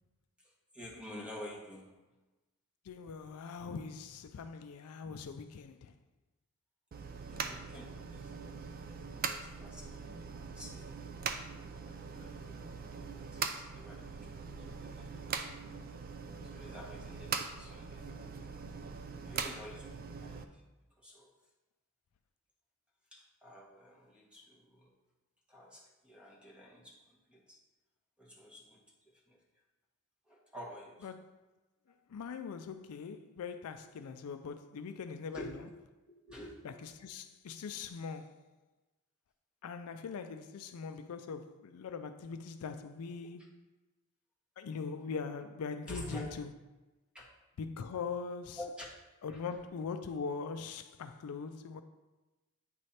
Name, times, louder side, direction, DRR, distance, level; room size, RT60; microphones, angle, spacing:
voice 1, 0.4-2.0 7.2-8.8 9.1-10.1 10.3-11.0 11.8-15.4 16.4-18.4 19.2-20.6 21.0-21.3 23.1-24.9 25.5-27.6 28.2-29.4 30.3-31.1 31.9-32.2 35.3-35.6 36.0-36.9 45.9-46.3 47.1-47.4 48.5-48.9 49.3-49.4, left 1 dB, 5° right, 1.3 m, -50 dB
voice 2, 2.8-5.9 31.0-31.2 32.1-35.5 36.6-38.5 39.6-43.7 44.6-46.5 47.6-48.6 49.2-51.8, left 5 dB, 70° left, 0.4 m, -41 dB
sound 1, 6.9-20.4, right 5 dB, 40° right, 0.4 m, -42 dB
8.8 x 3.3 x 4.2 m
head